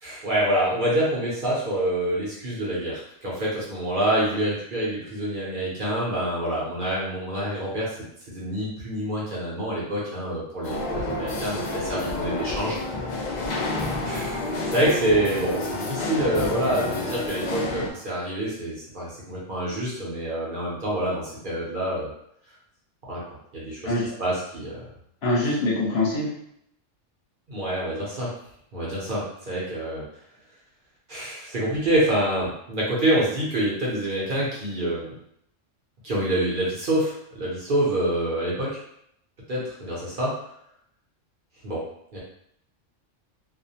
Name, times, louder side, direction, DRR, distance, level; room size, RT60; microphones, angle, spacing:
voice 1, 0.0-8.0 8.3-12.8 13.1-13.2 14.0-22.1 23.1-23.2 23.5-23.9 24.2-24.8 27.5-28.3 28.7-30.0 31.1-35.1 36.0-38.8 39.5-40.3 41.6-41.8 42.1-42.2, right 1 dB, 50° right, -5 dB, 0.7 m, -26 dB
sound 1, 10.6-17.9, left 2 dB, 80° left, 0.4 m, -29 dB
voice 2, 23.8-24.1 25.2-26.3, left 2 dB, 60° left, -5 dB, 1.0 m, -24 dB
2.4 x 2.1 x 2.7 m, 0.73 s
omnidirectional pair, 1.3 m